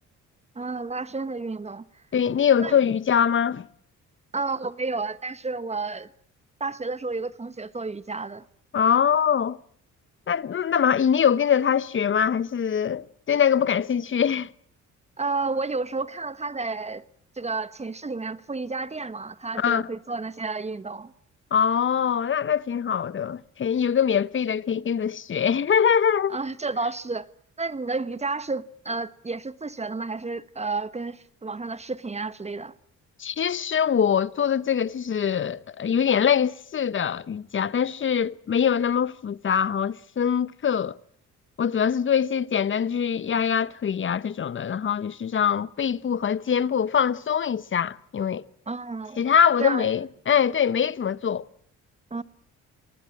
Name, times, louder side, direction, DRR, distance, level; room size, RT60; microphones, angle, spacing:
voice 1, 0.5-1.8 2.6-2.8 4.3-6.1 6.6-8.4 15.2-17.0 17.4-21.1 26.3-27.3 27.6-32.7 48.7-49.2 49.6-49.9 52.1-52.2, right 3 dB, 20° right, 1.2 m, -31 dB
voice 2, 2.1-3.6 8.7-9.6 10.3-14.5 19.5-19.9 21.5-26.4 33.2-40.9 41.6-48.4 49.2-51.4, left 8 dB, 40° left, 1.0 m, -23 dB
26.5 x 20.0 x 7.3 m
cardioid pair, 90°, 30 cm